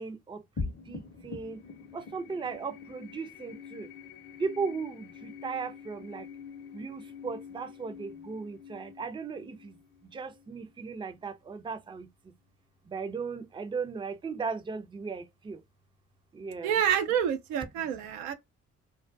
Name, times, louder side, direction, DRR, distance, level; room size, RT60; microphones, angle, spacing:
voice 1, 0.0-1.6 1.9-3.9 4.4-6.3 6.7-9.8 10.0-12.3 12.8-15.6 16.3-16.8, right 5 dB, 15° right, 0.4 m, -37 dB
sound 1, 0.6-11.2, left 5 dB, 30° left, 0.7 m, -44 dB
voice 2, 16.6-18.3, right 9 dB, 80° right, 0.5 m, -28 dB
2.3 x 2.1 x 2.5 m
hypercardioid pair, 40°, 34 cm